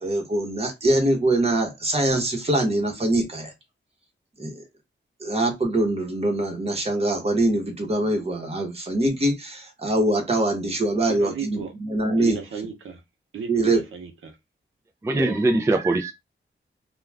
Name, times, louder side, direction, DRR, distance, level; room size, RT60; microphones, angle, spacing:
voice 1, 0.0-3.5 4.4-4.5 5.2-12.4 13.5-13.8, right 1 dB, 30° right, 1.0 m, -23 dB
voice 2, 11.1-11.7 12.2-13.0 13.3-14.3 15.2-15.3, right 6 dB, 85° right, 0.7 m, -34 dB
voice 3, 15.0-16.1, right 2 dB, 15° right, 0.4 m, -21 dB
2.4 x 2.3 x 3.2 m
wide cardioid pair, 125°, 20 cm